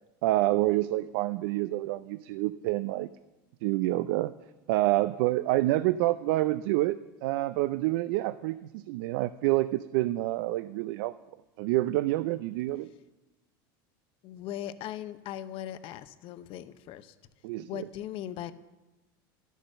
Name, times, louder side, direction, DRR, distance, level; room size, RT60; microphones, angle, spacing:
voice 1, 0.2-3.1 3.6-4.3 4.7-11.1 11.6-12.9 17.4-17.8, right 17 dB, 70° right, 14 dB, 0.4 m, -27 dB
voice 2, 14.2-17.1 17.6-18.5, left 11 dB, 50° left, 13 dB, 0.7 m, -39 dB
11.0 x 6.4 x 6.5 m, 1.1 s
supercardioid pair, 110°, 12 cm